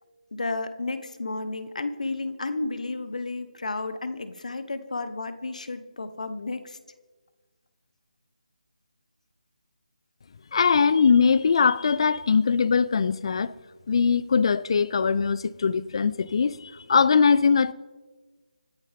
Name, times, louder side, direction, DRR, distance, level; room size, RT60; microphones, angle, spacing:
voice 1, 0.3-6.8, left 3 dB, 60° left, 1.3 m, -32 dB
voice 2, 10.5-13.5 13.9-17.7, left 5 dB, 40° left, 0.5 m, -21 dB
25.5 x 10.5 x 3.7 m
figure-of-eight pair, 155°, 4 cm